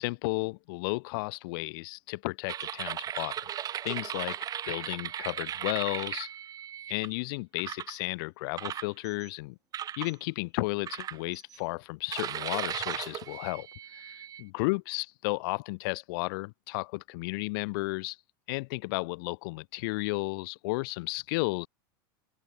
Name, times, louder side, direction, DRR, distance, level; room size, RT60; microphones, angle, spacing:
voice 1, 0.0-3.5 3.8-4.4 4.7-6.3 6.9-9.6 10.0-13.7 13.9-18.2 18.5-21.7, left 26 dB, 65° left, 4.0 m, -33 dB
sound 1, 2.5-7.1 7.6-8.0 8.6-9.3 9.7-10.1 10.9-11.6 12.1-14.4, right 10 dB, 30° right, 2.3 m, -37 dB
open air
supercardioid pair, 130°, 13 cm